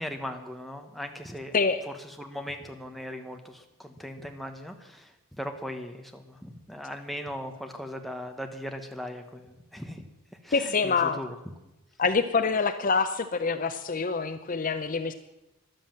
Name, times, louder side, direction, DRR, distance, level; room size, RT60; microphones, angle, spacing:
voice 1, 0.0-1.5 1.9-10.1 10.4-11.4, equal, ahead, 4 dB, 1.1 m, -39 dB
voice 2, 10.5-11.2 12.0-15.1, left 4 dB, 40° left, 9 dB, 0.6 m, -26 dB
13.0 x 11.0 x 7.4 m, 0.97 s
head